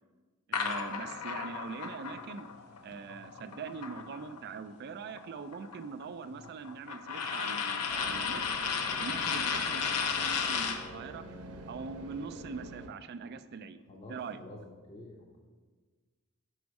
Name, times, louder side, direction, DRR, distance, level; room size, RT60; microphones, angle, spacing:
sound 1, 0.5-4.6 4.9-10.9, left 6 dB, 85° left, 0.6 m, -34 dB
voice 1, 0.5-2.5 2.8-8.4 8.9-11.2 11.7-13.8 14.1-14.4, right 5 dB, 45° right, 12 dB, 0.3 m, -42 dB
sound 2, 7.9-12.9, right 1 dB, 85° right, 0.7 m, -46 dB
voice 2, 13.9-15.4, left 1 dB, 30° left, -2 dB, 0.6 m, -48 dB
6.2 x 5.1 x 4.7 m, 1.4 s
head